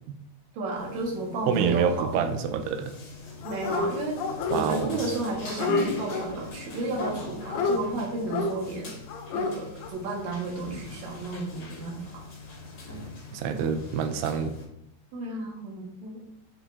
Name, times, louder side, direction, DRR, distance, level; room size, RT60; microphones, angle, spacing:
voice 1, 0.5-2.2 3.4-4.2 4.5-8.9 9.3-12.2 15.1-16.4, right 3 dB, 50° right, -2 dB, 2.7 m, -33 dB
sound 1, 0.8-14.6, left 2 dB, 45° left, 3.0 m, -41 dB
voice 2, 1.5-2.9 4.5-4.9 13.3-14.5, right 6 dB, 85° right, 8 dB, 2.7 m, -27 dB
Dog, 3.4-3.9 4.2-5.0 5.2-6.3 7.0-7.8 8.3-8.5 9.1-9.5 9.8-9.9, left 4 dB, 80° left, 2.6 m, -29 dB
7.8 x 6.8 x 2.8 m, 0.78 s
omnidirectional pair, 4.8 m